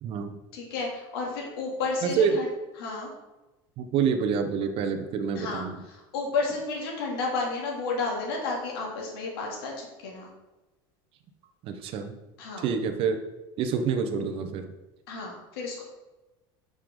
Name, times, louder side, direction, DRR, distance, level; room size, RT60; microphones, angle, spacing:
voice 1, 0.0-0.4 2.0-2.4 3.8-5.8 11.6-12.1 12.6-13.2 13.6-14.7, right 6 dB, 50° right, 6 dB, 1.1 m, -27 dB
voice 2, 0.5-2.5 2.8-3.1 5.3-5.7 6.1-10.3 12.4-12.7 15.1-15.8, left 3 dB, 90° left, -2 dB, 2.9 m, -31 dB
8.4 x 6.8 x 3.9 m, 1.1 s
supercardioid pair, 130°, 12 cm